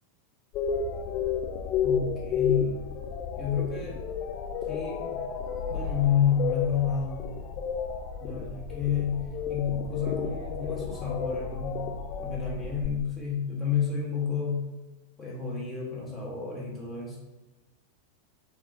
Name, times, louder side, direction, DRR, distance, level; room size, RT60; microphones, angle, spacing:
sound 1, 0.5-12.9, left 6 dB, 40° left, 0.4 m, -32 dB
voice 1, 1.8-2.8 3.4-4.0 4.7-5.2 5.7-7.3 8.2-11.9 12.2-14.7 15.2-17.2, left 7 dB, 20° left, -4 dB, 1.1 m, -30 dB
3.4 x 2.4 x 3.7 m, 1.1 s
figure-of-eight pair, 90°, 0 cm